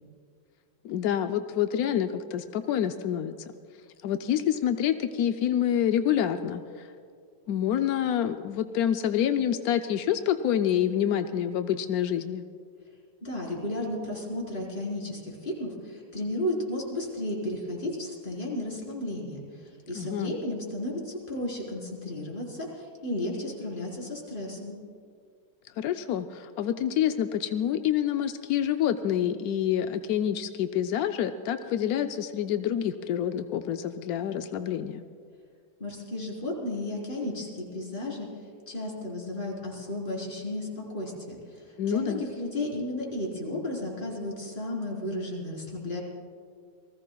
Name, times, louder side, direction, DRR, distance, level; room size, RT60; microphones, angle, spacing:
voice 1, 0.8-3.5 4.0-6.9 7.5-12.4 19.9-20.3 25.8-35.0 41.8-42.2, left 10 dB, 75° left, 7 dB, 0.8 m, -27 dB
voice 2, 13.2-24.8 35.8-38.3 38.7-46.0, left 1 dB, 25° left, -3 dB, 4.2 m, -33 dB
28.5 x 20.0 x 2.3 m, 2.2 s
omnidirectional pair, 2.1 m